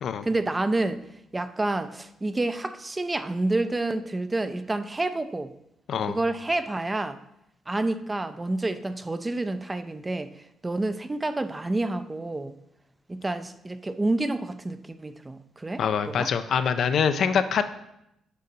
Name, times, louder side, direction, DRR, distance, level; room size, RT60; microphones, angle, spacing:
voice 1, 0.2-1.0 1.3-5.5 6.1-7.2 7.7-10.3 10.6-12.5 13.1-15.8 16.2-16.3, right 2 dB, 20° right, 0.4 m, -28 dB
voice 2, 15.8-17.6, left 7 dB, 65° left, 0.4 m, -24 dB
6.7 x 3.9 x 5.3 m
cardioid pair, 90°, 0 cm